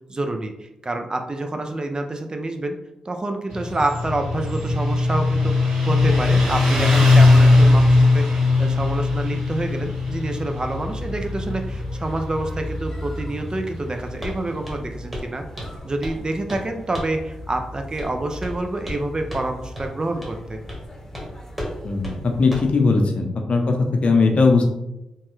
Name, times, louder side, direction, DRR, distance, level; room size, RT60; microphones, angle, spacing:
voice 1, 0.1-2.8 3.1-15.4 15.8-20.6, right 2 dB, 35° right, 5 dB, 0.5 m, -27 dB
Motorcycle, 3.5-14.6, left 3 dB, 70° right, 1.5 m, -19 dB
sound 1, 6.0-22.7, left 1 dB, 20° left, 0.9 m, -36 dB
Walk footsteps, 14.2-14.4 14.7-14.9 15.1-15.3 15.6-16.2 16.5-16.7 17.0-17.2 18.0-18.1 18.4-19.0 19.3-19.5 19.8-19.9 20.2-20.4 20.7-20.9 21.1-21.3 21.6-21.8 22.0-22.2 22.5-22.8, left 1 dB, 5° right, 1.3 m, -33 dB
voice 2, 21.8-24.7, left 3 dB, 55° left, 3 dB, 0.6 m, -19 dB
3.0 x 2.2 x 3.1 m, 0.89 s
supercardioid pair, 40°, 2 cm